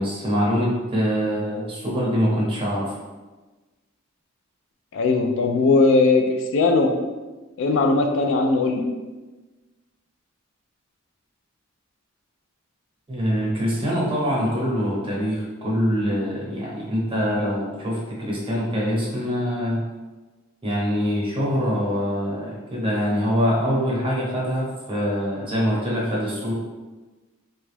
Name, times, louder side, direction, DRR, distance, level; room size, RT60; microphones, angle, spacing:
voice 1, 0.0-2.9 13.1-19.8 20.6-26.5, equal, 25° right, -5 dB, 0.8 m, -24 dB
voice 2, 4.9-6.9 7.6-8.8, left 3 dB, 60° left, 3 dB, 0.3 m, -19 dB
2.8 x 2.2 x 3.2 m, 1.2 s
head